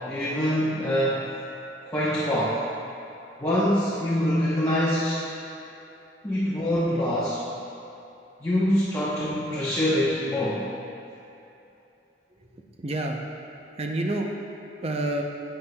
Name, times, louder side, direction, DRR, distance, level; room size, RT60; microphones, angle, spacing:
voice 1, 0.1-1.3 1.8-2.6 3.4-5.2 6.2-7.4 8.4-10.7, equal, 15° left, -9 dB, 0.9 m, -24 dB
voice 2, 12.3-13.4 13.8-14.3 14.8-15.2, right 1 dB, 35° right, 1 dB, 0.6 m, -29 dB
11.0 x 7.8 x 2.3 m, 2.8 s
head